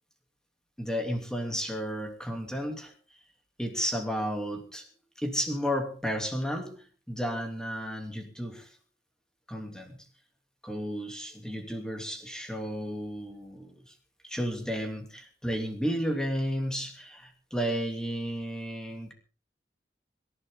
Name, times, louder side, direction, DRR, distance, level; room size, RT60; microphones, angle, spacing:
voice 1, 0.8-2.9 3.6-4.9 5.2-8.7 9.5-10.0 10.6-13.9 14.2-19.1, equal, 5° left, 3 dB, 3.1 m, -33 dB
25.0 x 11.5 x 3.9 m, 0.36 s
head